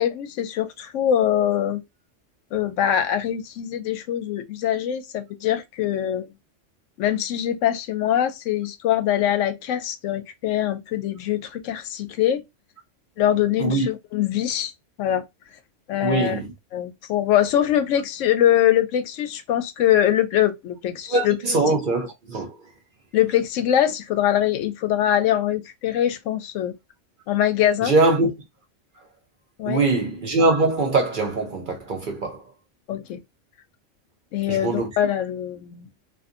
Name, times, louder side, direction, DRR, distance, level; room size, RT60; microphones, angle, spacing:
voice 1, 0.0-1.8 2.5-6.3 7.0-12.4 13.2-14.7 15.0-15.2 15.9-16.4 16.7-21.4 23.1-26.7 27.3-28.0 29.6-29.9 32.9-33.2 34.3-35.9, left 11 dB, 80° left, 0.9 m, -23 dB
voice 2, 16.0-16.5 21.1-22.5 27.8-28.3 29.7-32.4 34.5-34.9, right 3 dB, 50° right, 0.7 m, -22 dB
2.5 x 2.5 x 2.4 m
omnidirectional pair, 1.3 m